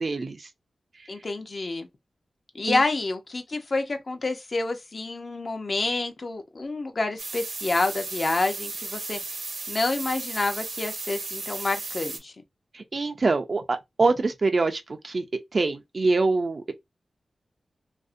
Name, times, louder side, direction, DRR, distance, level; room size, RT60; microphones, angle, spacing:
voice 1, 0.0-0.5 2.6-2.8 12.7-15.2 15.5-16.7, right 3 dB, 55° right, 0.3 m, -25 dB
voice 2, 1.1-1.9 2.5-9.2 9.7-12.3, left 3 dB, 50° left, 0.5 m, -28 dB
sound 1, 7.2-12.2, right 3 dB, 80° right, 0.7 m, -35 dB
2.5 x 2.0 x 2.5 m
cardioid pair, 60°, 0 cm